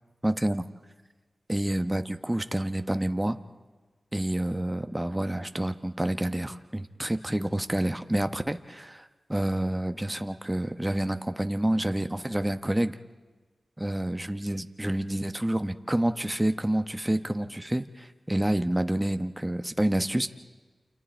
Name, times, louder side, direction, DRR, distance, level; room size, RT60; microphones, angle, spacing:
voice 1, 0.2-0.6 1.5-3.4 4.1-13.0 13.8-20.3, right 1 dB, 15° right, 8 dB, 1.1 m, -28 dB
29.0 x 27.0 x 4.5 m, 1.3 s
cardioid pair, 50°, 0 cm